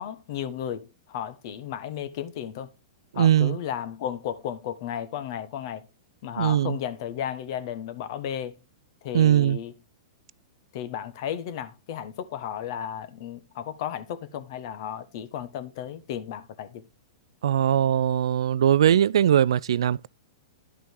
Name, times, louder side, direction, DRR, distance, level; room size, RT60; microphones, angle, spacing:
voice 1, 0.0-2.7 3.1-5.9 6.2-8.6 9.0-9.7 10.7-16.9, left 9 dB, 55° left, 1.3 m, -34 dB
voice 2, 3.2-3.6 6.4-6.7 9.1-9.6 17.4-20.1, right 10 dB, 70° right, 0.4 m, -20 dB
11.0 x 5.3 x 4.7 m
hypercardioid pair, 110°, 3 cm